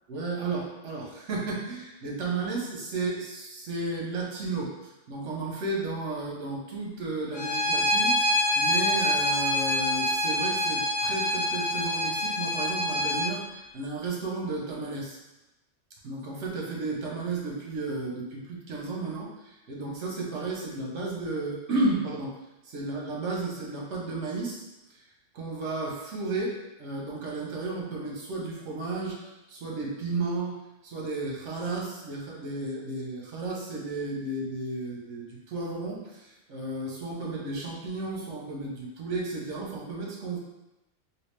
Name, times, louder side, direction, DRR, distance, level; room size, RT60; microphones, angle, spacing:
voice 1, 0.1-15.2 16.0-22.4 22.6-24.6 24.9-25.0 25.3-40.4, right 3 dB, 75° right, -2 dB, 1.1 m, -33 dB
Bowed string instrument, 7.3-13.3, left 1 dB, 75° left, 1.0 m, -26 dB
3.4 x 2.6 x 3.2 m, 0.97 s
omnidirectional pair, 1.3 m